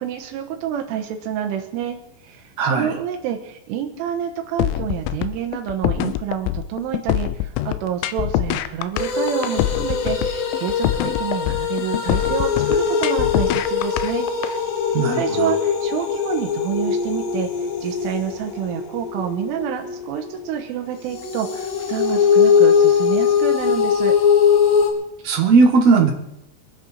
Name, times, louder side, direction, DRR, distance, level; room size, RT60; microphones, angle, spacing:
voice 1, 0.0-2.0 2.2-14.3 15.1-17.5 17.8-24.1, right 9 dB, 90° right, 3 dB, 3.6 m, -28 dB
voice 2, 2.6-2.9 14.9-15.5 25.2-26.1, right 4 dB, 75° right, 2 dB, 1.5 m, -16 dB
sound 1, 4.6-14.5, left 13 dB, 90° left, 3.3 m, -24 dB
sound 2, 9.0-20.5 21.1-24.9, left 7 dB, 65° left, 3.7 m, -21 dB
24.5 x 10.5 x 4.4 m, 0.83 s
omnidirectional pair, 5.6 m